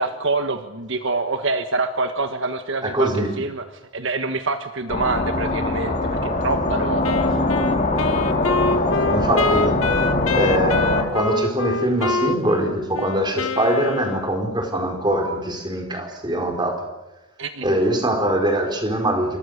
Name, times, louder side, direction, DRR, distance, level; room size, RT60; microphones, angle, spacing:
voice 1, 0.0-3.7 3.9-7.4 17.4-17.7, right 3 dB, 60° right, 7 dB, 1.5 m, -26 dB
voice 2, 2.8-3.3 9.1-9.8 10.3-16.9 17.6-19.4, right 1 dB, 20° right, 3 dB, 4.5 m, -23 dB
sound 1, 4.9-11.0, left 2 dB, 35° left, 3.7 m, -22 dB
Wind instrument woodwind instrument, 7.0-14.5, left 3 dB, 70° left, 1.6 m, -26 dB
28.5 x 25.0 x 6.6 m, 1.0 s
head